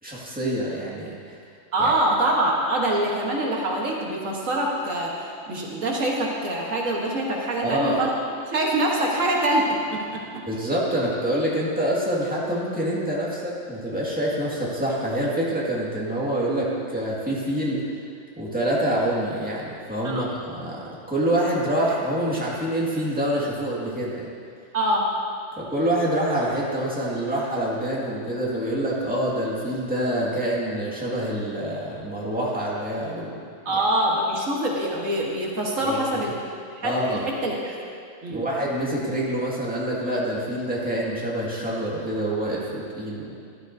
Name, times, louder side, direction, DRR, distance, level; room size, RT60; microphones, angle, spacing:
voice 1, 0.0-1.4 1.8-1.9 7.6-8.1 10.5-17.8 18.4-24.3 25.6-33.3 33.7-33.8 35.8-36.2 36.8-37.2 38.3-43.4, right 1 dB, 5° right, -6 dB, 1.9 m, -26 dB
voice 2, 1.7-5.1 5.5-8.1 8.5-9.7 9.9-10.2 20.0-20.2 24.7-25.0 33.7-36.3 36.8-37.8 38.2-38.4, right 1 dB, 85° right, -2 dB, 1.7 m, -24 dB
13.5 x 12.0 x 2.7 m, 2.3 s
omnidirectional pair, 1.3 m